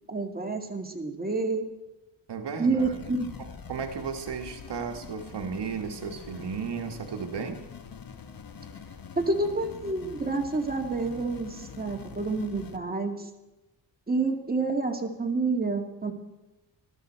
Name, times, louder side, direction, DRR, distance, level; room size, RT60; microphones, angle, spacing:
voice 1, 0.1-1.7 2.6-3.3 9.2-13.3 14.1-16.1, right 3 dB, 20° right, 3 dB, 2.2 m, -28 dB
voice 2, 2.3-2.8 3.7-7.7, right 6 dB, 65° right, 5 dB, 1.5 m, -34 dB
sound 1, 2.8-12.8, left 6 dB, 50° left, 1.4 m, -44 dB
19.5 x 13.0 x 4.4 m, 1.0 s
cardioid pair, 95°, 45 cm